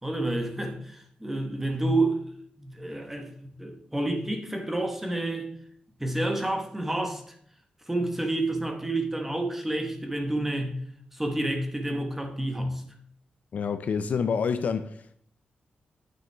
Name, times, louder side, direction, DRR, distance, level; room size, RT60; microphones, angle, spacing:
voice 1, 0.0-2.2 2.6-5.5 6.0-7.3 7.9-10.8 11.1-12.8, right 1 dB, 10° right, 1.0 m, -29 dB
voice 2, 13.5-15.2, left 6 dB, 55° left, 0.4 m, -28 dB
9.2 x 6.0 x 3.3 m
wide cardioid pair, 170°, 3 cm